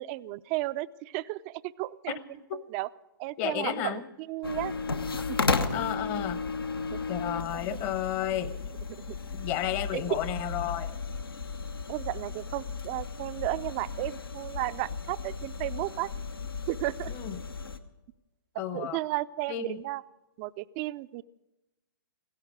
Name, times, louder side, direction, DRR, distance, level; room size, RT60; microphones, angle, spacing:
voice 1, 0.0-2.2 2.5-2.9 3.2-4.0 4.3-4.7 5.3-5.4 6.9-7.0 7.5-7.6 9.9-10.2 11.9-16.1 16.7-17.1 18.7-20.0 20.4-21.2, right 18 dB, 35° right, 16 dB, 0.4 m, -33 dB
voice 2, 3.4-4.0 5.7-6.4 7.1-8.5 9.3-11.0 17.1-17.4 18.6-19.0 19.5-19.8, left 10 dB, 35° left, 13 dB, 0.9 m, -32 dB
sound 1, 4.4-17.8, left 4 dB, 85° left, 1.0 m, -34 dB
17.0 x 16.5 x 4.8 m, 1.0 s
hypercardioid pair, 120°, 12 cm